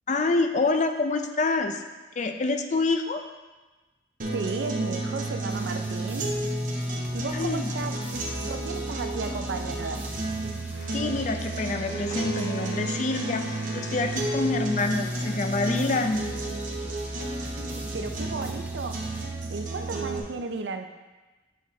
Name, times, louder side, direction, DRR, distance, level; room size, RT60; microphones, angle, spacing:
voice 1, 0.1-1.8 2.2-3.2 7.3-7.7 10.9-16.2, left 3 dB, 40° left, 6 dB, 0.4 m, -27 dB
sound 1, 4.2-20.2, right 2 dB, 45° right, 1.1 m, -31 dB
voice 2, 4.3-6.4 7.1-10.1 17.4-19.2 19.5-20.9, right 4 dB, 75° right, 7 dB, 0.5 m, -35 dB
sound 2, 5.5-19.3, right 1 dB, 10° right, 0.6 m, -45 dB
Wind instrument woodwind instrument, 10.7-15.7, left 4 dB, 75° left, 0.8 m, -43 dB
8.3 x 5.7 x 2.8 m, 1.2 s
head